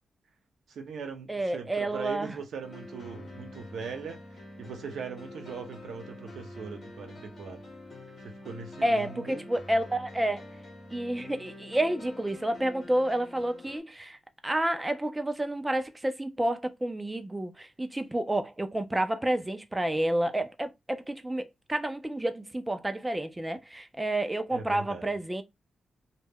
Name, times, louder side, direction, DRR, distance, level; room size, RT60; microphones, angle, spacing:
voice 1, 0.7-7.6 8.2-9.4 24.5-25.1, right 5 dB, 75° right, 0.7 m, -40 dB
voice 2, 1.3-2.4 8.8-10.4 10.9-14.2 14.4-25.4, right 1 dB, 10° right, 0.4 m, -30 dB
sound 1, 2.6-13.8, left 1 dB, 40° left, 1.0 m, -46 dB
2.2 x 2.1 x 3.3 m
wide cardioid pair, 135°, 0 cm